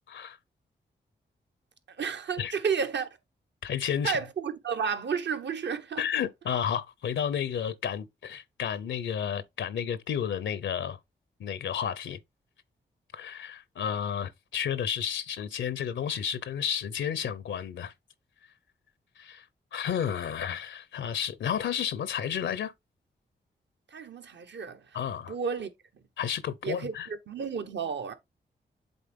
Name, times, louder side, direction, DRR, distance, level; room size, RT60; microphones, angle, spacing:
voice 1, 2.0-3.1 4.0-6.0 23.9-24.8 25.3-25.7 26.6-28.1, right 6 dB, 70° right, 1.1 m, -32 dB
voice 2, 3.6-4.2 6.0-11.0 11.4-12.2 13.1-17.9 19.2-19.5 19.7-22.7 24.9-25.4 26.2-27.1, left 8 dB, 85° left, 0.6 m, -32 dB
8.0 x 3.6 x 3.6 m
cardioid pair, 50°, 19 cm